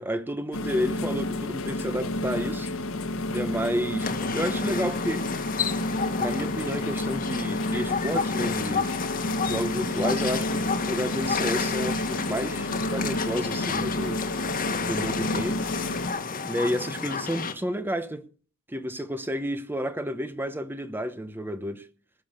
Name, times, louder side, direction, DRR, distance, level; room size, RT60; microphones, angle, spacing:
voice 1, 0.0-2.7 3.3-5.3 6.2-8.9 9.4-14.2 14.8-15.6 16.4-18.2 18.7-21.9, equal, 10° right, 1.0 m, -31 dB
sound 1, 0.5-16.1, left 1 dB, 65° left, 1.6 m, -30 dB
sound 2, 4.0-17.5, left 5 dB, 40° left, 1.6 m, -31 dB
19.0 x 7.0 x 6.6 m
head